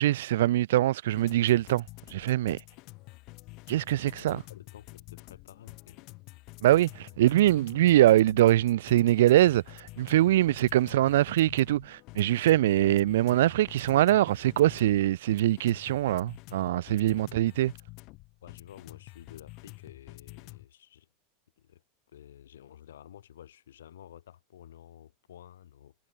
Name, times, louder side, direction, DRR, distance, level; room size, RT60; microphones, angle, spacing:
voice 1, 0.0-1.8 2.1-2.6 3.7-4.4 6.6-17.7, right 14 dB, 80° right, 0.4 m, -23 dB
sound 1, 1.1-20.7, left 24 dB, 55° left, 2.8 m, -49 dB
voice 2, 3.9-6.0 10.8-10.9 17.0-17.3 18.4-21.1 21.6-21.8 22.1-25.9, left 10 dB, 85° left, 4.9 m, -51 dB
hypercardioid pair, 100°, 0 cm